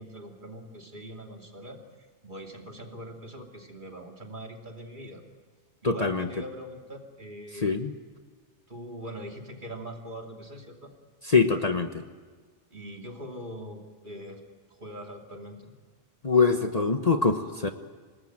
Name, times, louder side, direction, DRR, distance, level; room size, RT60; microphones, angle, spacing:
voice 1, 0.0-1.8 2.2-5.2 5.8-7.8 8.7-10.9 12.7-14.4 14.8-15.7, equal, 40° right, 2 dB, 3.0 m, -42 dB
voice 2, 5.8-6.3 7.6-7.9 11.2-12.0 16.2-17.7, left 4 dB, 35° left, 6 dB, 1.2 m, -23 dB
27.0 x 19.5 x 8.9 m, 1.5 s
omnidirectional pair, 1.2 m